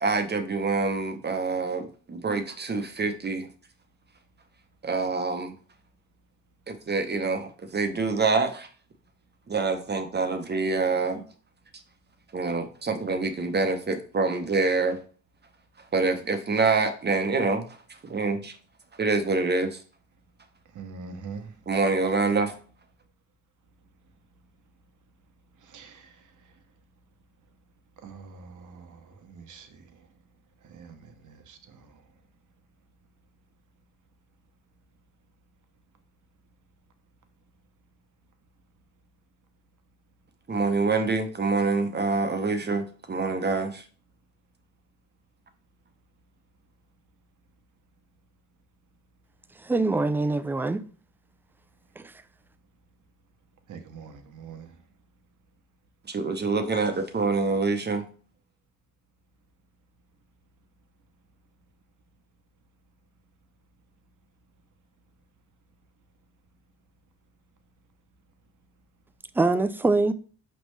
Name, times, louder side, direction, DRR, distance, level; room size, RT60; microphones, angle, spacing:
voice 1, 0.0-3.5 4.8-5.5 6.7-8.7 9.5-11.2 12.3-15.0 15.9-17.7 18.0-18.5 19.0-19.8 21.7-22.5 40.5-43.8 56.1-58.0, right 3 dB, 30° right, 0.7 m, -26 dB
voice 2, 20.7-21.5 25.6-26.5 28.0-30.1 30.6-32.0 53.7-54.8, right 5 dB, 60° right, 0.9 m, -44 dB
voice 3, 49.6-50.8 52.0-52.1 69.3-70.1, right 3 dB, 5° right, 0.3 m, -24 dB
5.1 x 3.2 x 3.1 m
supercardioid pair, 60°, 34 cm